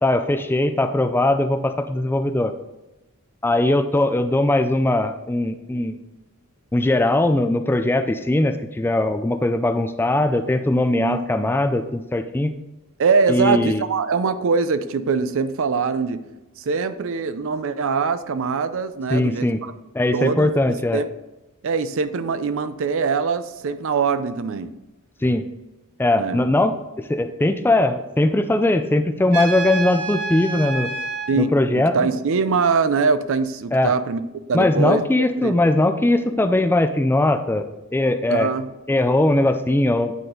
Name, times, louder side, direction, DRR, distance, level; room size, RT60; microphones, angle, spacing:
voice 1, 0.0-2.5 3.4-6.0 6.7-12.5 13.3-13.8 19.1-19.6 19.9-21.0 25.2-25.4 26.0-30.9 31.4-32.0 33.7-33.9 34.5-37.6 37.9-38.5 38.9-40.1, left 1 dB, 10° left, 8 dB, 0.3 m, -20 dB
voice 2, 13.0-16.2 16.6-19.7 20.1-21.1 21.6-24.7 26.2-26.4 31.3-34.2 34.5-35.6 38.3-38.7, right 5 dB, 60° right, 12 dB, 0.5 m, -23 dB
Trumpet, 29.3-31.3, right 4 dB, 80° right, 1.8 m, -28 dB
9.2 x 4.0 x 3.8 m, 1.0 s
head